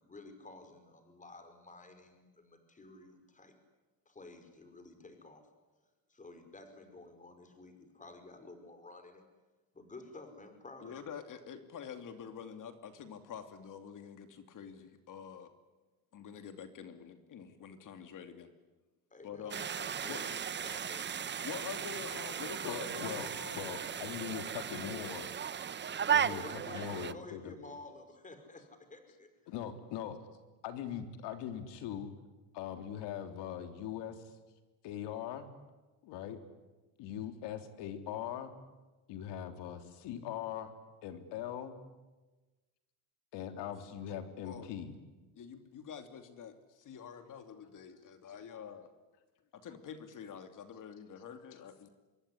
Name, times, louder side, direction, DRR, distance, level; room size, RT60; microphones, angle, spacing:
voice 1, 0.0-3.6 4.1-5.4 6.1-9.2 9.7-11.0 19.1-21.1 26.1-29.3, left 3 dB, 15° left, 8 dB, 5.2 m, -52 dB
voice 2, 10.8-15.5 16.1-18.5 19.2-19.6 20.0-20.2 21.4-23.8 24.7-25.3 44.4-44.7 45.3-48.9 49.5-51.9, left 7 dB, 45° left, 8 dB, 2.8 m, -47 dB
sound 1, 19.5-27.1, right 8 dB, 25° right, 0.9 m, -36 dB
voice 3, 22.6-25.3 26.1-27.5 29.5-30.2 30.6-32.1 32.5-34.2 34.8-35.5 36.0-36.4 37.0-38.5 39.1-40.7 41.0-41.8 43.3-44.9, left 9 dB, 70° left, 8 dB, 3.6 m, -41 dB
26.0 x 22.0 x 10.0 m, 1.2 s
cardioid pair, 120°, 44 cm